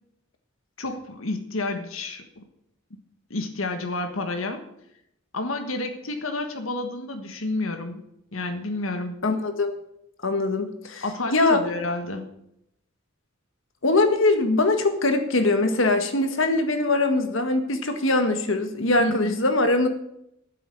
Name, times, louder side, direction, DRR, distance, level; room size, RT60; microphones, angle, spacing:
voice 1, 0.8-2.4 3.3-4.6 5.3-8.0 8.3-9.2 11.0-12.4 19.0-19.4, left 2 dB, 85° left, 6 dB, 1.4 m, -30 dB
voice 2, 9.2-9.8 10.2-11.0 11.3-11.6 13.8-19.9, left 2 dB, 70° left, 7 dB, 1.6 m, -22 dB
9.4 x 8.0 x 9.2 m, 0.79 s
head